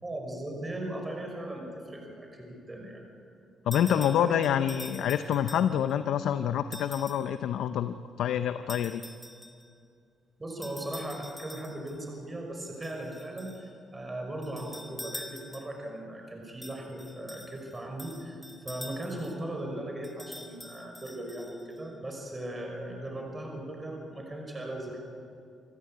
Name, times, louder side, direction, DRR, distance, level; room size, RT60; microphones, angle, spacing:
voice 1, 0.0-3.0 3.8-4.4 10.4-25.0, right 1 dB, 20° right, 2 dB, 5.3 m, -38 dB
voice 2, 3.7-9.0, left 9 dB, 75° left, 10 dB, 0.7 m, -27 dB
sound 1, 3.7-6.0 6.7-7.3 8.7-9.7 10.6-12.0 12.8-13.7 14.4-15.9 16.6-19.4 20.0-21.8, left 1 dB, 5° left, 2.9 m, -46 dB
26.5 x 14.0 x 8.7 m, 2.4 s
cardioid pair, 90°, 0 cm